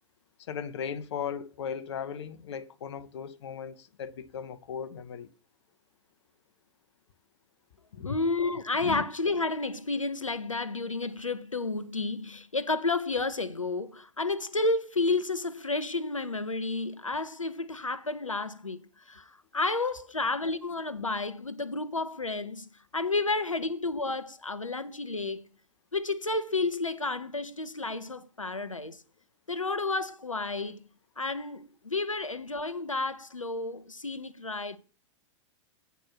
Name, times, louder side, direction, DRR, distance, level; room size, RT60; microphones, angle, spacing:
voice 1, 0.4-5.3 7.9-8.2 8.8-9.0, left 7 dB, 60° left, 0.8 m, -37 dB
voice 2, 8.0-18.8 19.1-22.7 22.9-25.5 25.9-29.0 29.5-30.8 31.2-34.8, left 3 dB, 90° left, 0.7 m, -31 dB
9.1 x 4.3 x 6.0 m
figure-of-eight pair, 100°, 16 cm